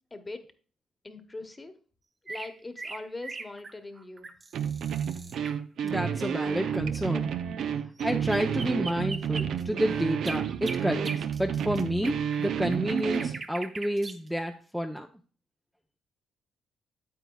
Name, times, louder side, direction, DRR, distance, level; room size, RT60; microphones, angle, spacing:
voice 1, 0.1-0.4 1.0-1.7 2.3-4.3, left 2 dB, 20° left, 8 dB, 1.1 m, -41 dB
sound 1, 2.3-5.6 8.0-8.1 8.3-14.3, right 3 dB, 30° right, 0.8 m, -41 dB
sound 2, 4.5-13.4, right 8 dB, 70° right, 0.5 m, -30 dB
voice 2, 5.8-7.3 8.0-15.1, equal, ahead, 4 dB, 0.6 m, -30 dB
9.0 x 8.1 x 2.3 m, 0.40 s
cardioid pair, 90°, 0 cm